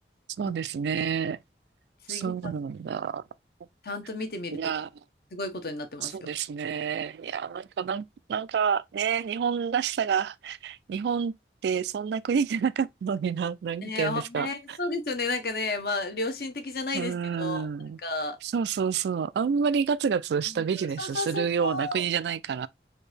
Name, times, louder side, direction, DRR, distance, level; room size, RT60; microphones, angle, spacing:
voice 1, 0.4-1.4 2.1-3.2 4.5-4.9 6.0-11.3 11.6-14.8 16.9-18.0 18.4-22.7, right 6 dB, 75° right, 0.3 m, -28 dB
voice 2, 2.1-2.5 3.8-4.6 5.3-6.3 13.8-17.7 18.0-18.4 20.5-22.0, left 2 dB, 55° left, 0.8 m, -32 dB
4.4 x 2.7 x 3.2 m
head